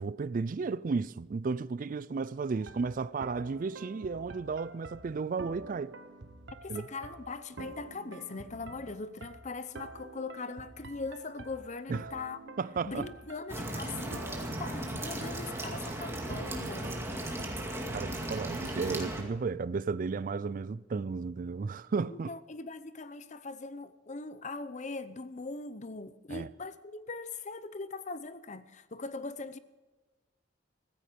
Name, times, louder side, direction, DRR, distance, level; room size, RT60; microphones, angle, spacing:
voice 1, 0.0-5.9 6.7-6.9 11.9-12.1 12.6-13.1 17.9-22.3 26.3-26.5, right 4 dB, 45° right, 0.4 m, -33 dB
sound 1, 2.5-18.1, right 3 dB, 65° right, 1.1 m, -48 dB
voice 2, 6.6-12.5 12.8-17.3 22.1-29.6, left 3 dB, 40° left, 0.7 m, -41 dB
sound 2, 13.5-19.2, right 1 dB, 15° right, 2.3 m, -36 dB
15.5 x 15.0 x 5.2 m
head